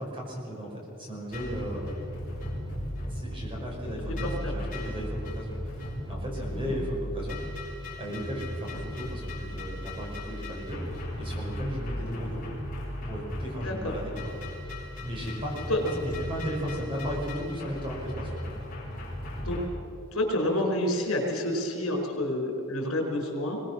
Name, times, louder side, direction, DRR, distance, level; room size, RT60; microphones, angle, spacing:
voice 1, 0.0-2.1 3.1-7.4 8.0-12.4 13.1-14.3 15.0-18.6, equal, 25° right, -2 dB, 5.3 m, -36 dB
sound 1, 1.3-19.7, left 1 dB, 40° left, 5.2 m, -36 dB
voice 2, 13.6-13.9 15.7-15.8 19.4-19.6 20.1-23.6, left 1 dB, 75° left, 1 dB, 4.6 m, -29 dB
22.5 x 19.5 x 6.2 m, 2.7 s
head